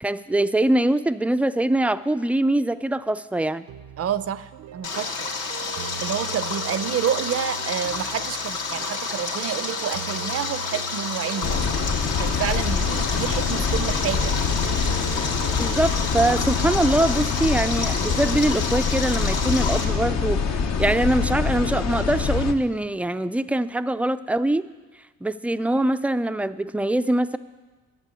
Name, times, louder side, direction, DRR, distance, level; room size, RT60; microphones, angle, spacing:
voice 1, 0.0-3.7 15.6-24.7 25.2-27.4, right 1 dB, 5° right, 13 dB, 0.3 m, -23 dB
sound 1, 3.7-20.4, right 6 dB, 90° right, 0.8 m, -41 dB
voice 2, 4.0-5.1 6.0-11.7 12.2-14.4, right 9 dB, 50° right, 14 dB, 0.6 m, -29 dB
Stream, 4.8-19.8, left 4 dB, 80° left, 2.1 m, -30 dB
sound 2, 11.4-22.5, left 5 dB, 60° left, 0.9 m, -25 dB
11.0 x 7.6 x 8.3 m, 1.3 s
cardioid pair, 90°, 30 cm